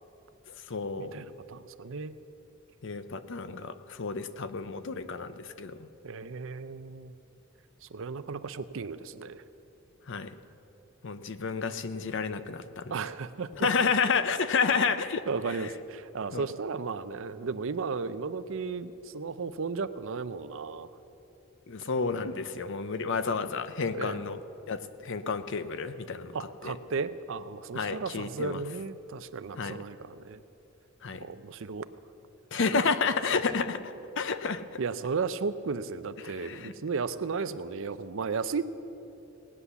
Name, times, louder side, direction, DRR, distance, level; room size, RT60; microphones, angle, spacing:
voice 1, 0.5-1.2 2.8-5.8 10.1-10.3 11.0-12.9 13.6-15.2 16.3-16.5 21.7-24.4 24.7-26.4 26.6-26.8 27.7-28.6 29.6-29.7 31.0-31.3 32.5-34.6 36.2-36.7, left 5 dB, 60° left, 12 dB, 0.6 m, -30 dB
voice 2, 1.0-2.2 6.0-7.1 7.8-9.4 12.9-14.1 15.3-20.9 23.9-24.2 26.3-30.4 31.1-31.9 32.7-32.8 33.3-33.4 34.8-38.6, right 4 dB, 65° right, 13 dB, 0.5 m, -35 dB
18.5 x 9.7 x 6.9 m, 2.9 s
head